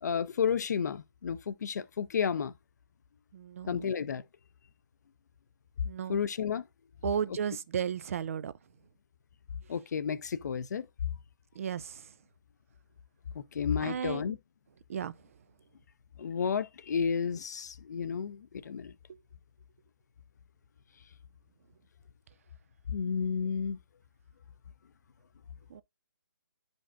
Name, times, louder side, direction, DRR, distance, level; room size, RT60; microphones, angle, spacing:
voice 1, 0.0-2.5 3.7-4.2 6.1-6.6 7.3-7.4 9.7-10.9 13.3-14.4 16.2-18.9 22.9-23.8, left 6 dB, 55° left, 0.6 m, -32 dB
voice 2, 3.3-3.9 5.9-6.2 7.0-8.5 11.6-12.0 13.8-14.4 14.9-15.1 25.7-25.8, right 8 dB, 40° right, 0.3 m, -34 dB
9.9 x 5.2 x 2.4 m
figure-of-eight pair, 145°, 11 cm